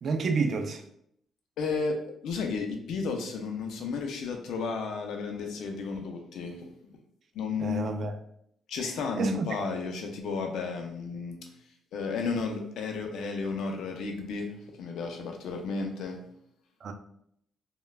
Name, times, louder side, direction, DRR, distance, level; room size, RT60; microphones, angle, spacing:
voice 1, 0.0-0.8 7.6-8.1 8.8-9.5 16.8-16.9, right 4 dB, 55° right, 6 dB, 0.3 m, -30 dB
voice 2, 1.6-6.7 7.3-7.9 8.7-11.4 11.9-16.2, left 4 dB, 80° left, 4 dB, 0.4 m, -33 dB
3.1 x 2.1 x 2.3 m, 0.71 s
cardioid pair, 90°, 0 cm